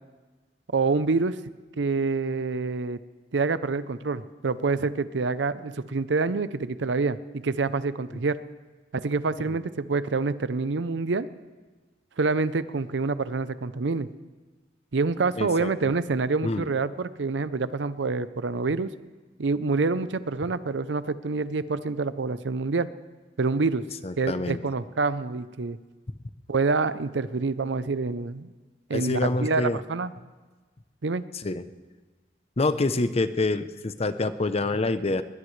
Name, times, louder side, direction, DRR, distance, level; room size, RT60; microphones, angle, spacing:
voice 1, 0.7-1.4 1.8-3.0 3.3-8.4 8.9-11.3 12.2-14.1 14.9-18.9 19.4-22.9 23.4-23.8 24.2-25.8 26.5-28.5 28.9-30.1 31.0-31.2, right 4 dB, 75° right, 14 dB, 0.6 m, -27 dB
voice 2, 15.4-15.7 16.4-16.7 24.0-24.6 28.9-29.8 31.3-31.6 32.6-35.2, left 2 dB, 35° left, 12 dB, 0.7 m, -26 dB
21.0 x 20.5 x 3.2 m, 1.3 s
head